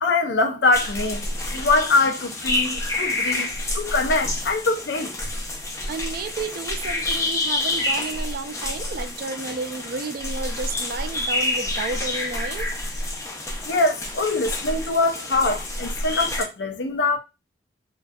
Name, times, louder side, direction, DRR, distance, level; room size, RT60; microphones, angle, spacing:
voice 1, 0.0-5.3 13.6-17.2, left 3 dB, 75° left, 0.5 m, -23 dB
sound 1, 0.7-16.4, left 2 dB, 15° left, 0.4 m, -28 dB
voice 2, 5.9-12.7, right 4 dB, 55° right, 0.3 m, -32 dB
2.6 x 2.2 x 2.2 m
head